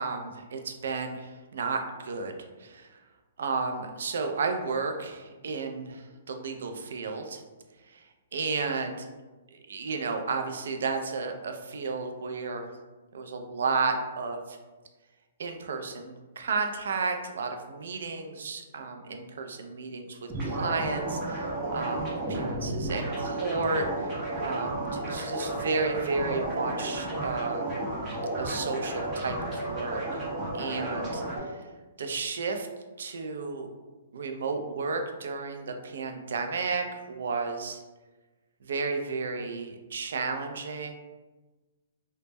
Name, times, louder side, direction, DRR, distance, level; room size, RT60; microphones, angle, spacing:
voice 1, 0.0-3.0 3.4-7.4 7.9-8.1 8.3-9.1 9.5-12.7 13.1-14.6 15.4-27.7 28.4-30.2 30.5-31.7 32.0-32.7 33.0-33.7 34.1-37.8 38.6-40.9, right 4 dB, 75° right, 5 dB, 0.3 m, -33 dB
sound 1, 20.3-31.4, right 1 dB, 20° right, 0.6 m, -32 dB
2.0 x 2.0 x 3.3 m, 1.2 s
hypercardioid pair, 165°, 0 cm